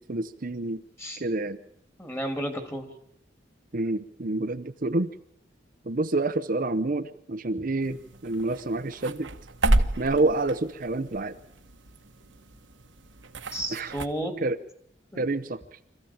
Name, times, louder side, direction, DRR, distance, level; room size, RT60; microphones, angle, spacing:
voice 1, 0.0-0.8 1.2-1.6 3.7-5.1 5.9-9.3 10.0-11.3 13.7-13.9 14.4-14.6 15.2-15.6, right 2 dB, 50° right, 8 dB, 0.8 m, -28 dB
voice 2, 2.0-2.8 13.5-14.3 15.1-15.3, right 1 dB, 15° left, 6 dB, 3.4 m, -32 dB
sound 1, 7.8-14.1, right 1 dB, 85° right, 1.4 m, -31 dB
26.0 x 15.0 x 8.8 m, 0.73 s
head